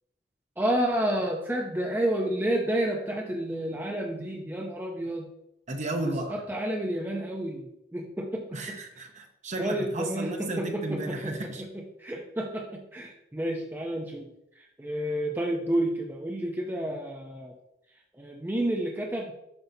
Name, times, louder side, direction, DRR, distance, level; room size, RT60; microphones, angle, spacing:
voice 1, 0.6-5.3 6.0-8.8 9.6-14.3 14.6-17.5 18.2-19.3, right 1 dB, 10° right, 0 dB, 0.6 m, -30 dB
voice 2, 5.7-6.4 8.5-11.7, right 2 dB, 40° right, 4 dB, 0.9 m, -33 dB
7.9 x 5.5 x 2.7 m, 0.81 s
head